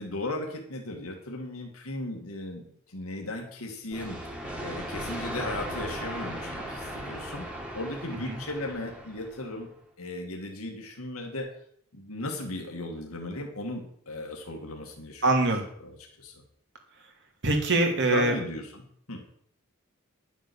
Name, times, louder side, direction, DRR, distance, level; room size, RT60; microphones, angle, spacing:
voice 1, 0.0-7.5 7.7-9.7 10.0-11.5 11.9-16.4 18.1-19.2, left 2 dB, 80° left, 1 dB, 2.2 m, -36 dB
sound 1, 3.9-9.6, right 1 dB, 5° right, 2.3 m, -37 dB
voice 2, 15.2-15.6 17.4-18.3, right 2 dB, 55° right, 2 dB, 2.8 m, -23 dB
11.0 x 7.4 x 7.1 m, 0.65 s
head